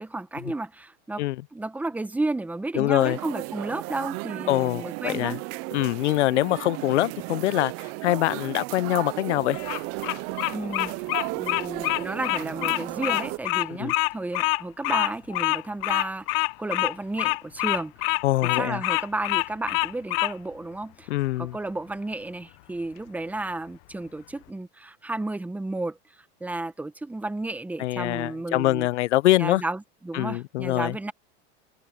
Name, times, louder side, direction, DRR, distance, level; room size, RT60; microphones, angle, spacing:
voice 1, 0.0-1.2 1.5-5.4 10.5-10.9 11.3-18.2 18.5-21.1 21.4-28.9 29.3-31.1, right 2 dB, 5° right, 1.0 m, -32 dB
voice 2, 2.8-3.2 4.5-5.4 5.7-9.6 13.8-13.9 18.2-18.8 21.1-21.6 27.8-29.6 30.1-31.0, left 16 dB, 90° left, 0.7 m, -24 dB
sound 1, 3.0-13.4, right 25 dB, 45° right, 0.6 m, -35 dB
Bird vocalization bird call bird song, 9.5-20.3, left 25 dB, 50° left, 0.9 m, -26 dB
supercardioid pair, 135°, 34 cm